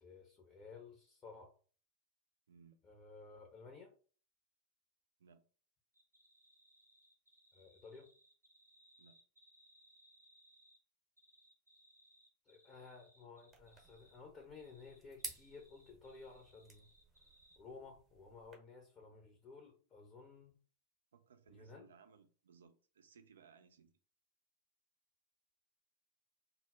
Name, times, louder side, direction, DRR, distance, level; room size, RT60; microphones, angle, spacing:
voice 1, 0.0-1.5 2.8-3.9 7.5-8.1 12.5-16.9 17.6-20.6 21.5-21.9, left 4 dB, 25° left, 0.6 m, -55 dB
voice 2, 2.5-2.8 5.2-5.4 9.0-9.2 21.1-23.9, right 6 dB, 65° right, 0.4 m, -63 dB
sound 1, 5.9-10.8 11.2-14.2 14.6-17.6, equal, 90° left, 0.8 m, -68 dB
sound 2, 13.5-18.5, right 3 dB, 20° right, 0.8 m, -54 dB
2.1 x 2.0 x 3.5 m
figure-of-eight pair, 90°, 0 cm